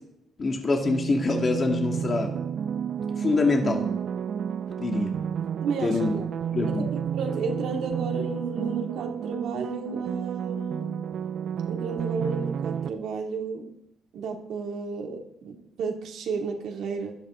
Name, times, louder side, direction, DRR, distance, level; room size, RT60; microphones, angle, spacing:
voice 1, 0.4-2.3 3.2-3.9 4.8-5.1 5.8-6.1 6.5-6.9, left 3 dB, 35° left, 2 dB, 2.2 m, -25 dB
sound 1, 0.8-12.9, right 8 dB, 65° right, 0.6 m, -31 dB
voice 2, 5.6-6.3 6.7-10.9 11.7-13.6 14.1-17.2, right 4 dB, 80° right, 1 dB, 2.6 m, -32 dB
16.5 x 12.5 x 3.8 m, 0.82 s
cardioid pair, 90°, 0 cm